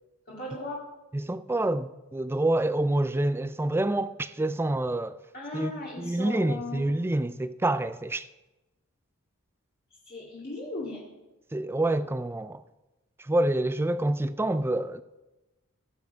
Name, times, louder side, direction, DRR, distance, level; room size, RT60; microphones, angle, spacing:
voice 1, 0.3-0.8 5.3-6.8 10.1-11.0, left 2 dB, 45° left, 2.2 m, -37 dB
voice 2, 1.1-5.2 5.5-5.7 6.0-8.3 11.5-12.6 13.2-15.0, right 1 dB, 10° right, 0.3 m, -27 dB
17.0 x 7.1 x 4.7 m
head